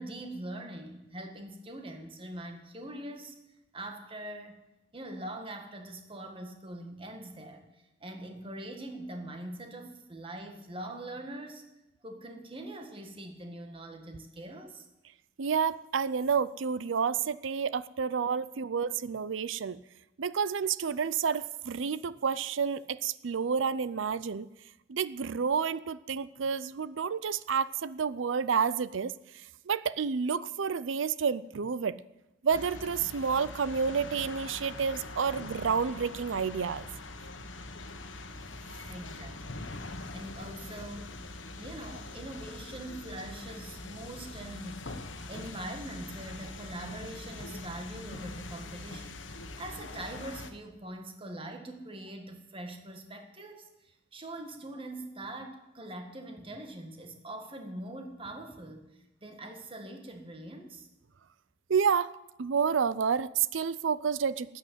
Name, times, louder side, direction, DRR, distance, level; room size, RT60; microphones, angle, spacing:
voice 1, 0.0-3.4 3.7-4.6 4.9-11.6 12.0-14.8 38.9-41.2 41.6-49.2 49.6-58.9 59.2-60.9, right 1 dB, 30° right, 4 dB, 1.7 m, -43 dB
voice 2, 15.4-19.8 20.2-24.5 24.9-29.1 29.7-32.0 32.4-36.9 61.7-62.1 62.4-64.6, right 6 dB, 90° right, 17 dB, 0.5 m, -29 dB
sound 1, 32.5-50.5, left 2 dB, 80° left, 1.3 m, -43 dB
13.5 x 8.7 x 9.1 m, 0.93 s
head